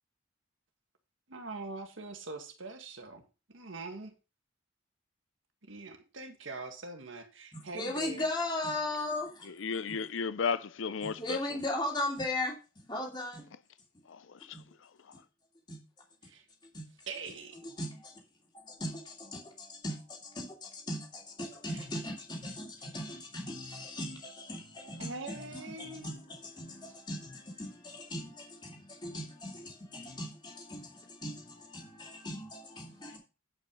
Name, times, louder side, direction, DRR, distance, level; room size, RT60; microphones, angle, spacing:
voice 1, 1.3-3.2 3.5-4.1 5.6-8.2 16.2-16.5 17.1-17.8 21.7-21.9 25.0-26.2, right 3 dB, 80° right, 1.8 m, -43 dB
voice 2, 7.5-9.6 11.0-13.4 14.5-14.6 15.1-15.2 15.7-15.8 16.6-17.1 17.6-18.2 18.5-33.2, left 1 dB, 20° left, 2.7 m, -38 dB
voice 3, 9.6-11.4 14.1-15.1, left 5 dB, 80° left, 0.6 m, -35 dB
9.4 x 5.7 x 5.3 m
head